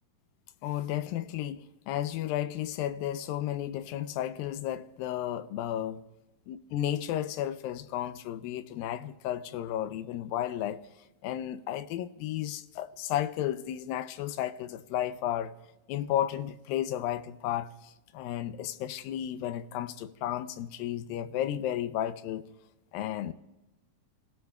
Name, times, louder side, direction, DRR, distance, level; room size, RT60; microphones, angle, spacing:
voice 1, 0.6-6.0 6.5-10.8 11.2-15.5 15.9-22.4 22.9-23.3, left 12 dB, 85° left, 2.4 m, -33 dB
29.5 x 16.5 x 2.3 m
omnidirectional pair, 4.1 m